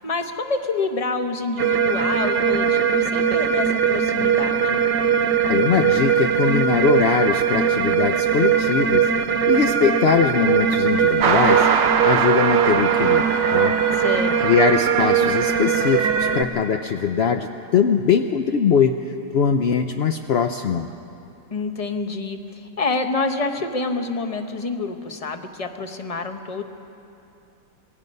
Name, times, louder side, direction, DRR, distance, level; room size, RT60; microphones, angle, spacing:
voice 1, 0.0-4.8 13.9-14.6 21.5-26.6, left 3 dB, 25° left, 6 dB, 0.9 m, -27 dB
sound 1, 1.6-16.4, right 7 dB, 75° right, 1.4 m, -20 dB
voice 2, 5.4-9.1 9.5-11.7 12.0-13.8 14.4-18.9 19.3-20.9, left 6 dB, 70° left, 6 dB, 0.6 m, -21 dB
sound 2, 11.2-16.0, right 6 dB, 50° right, 0.9 m, -24 dB
26.5 x 19.0 x 5.4 m, 2.7 s
omnidirectional pair, 1.8 m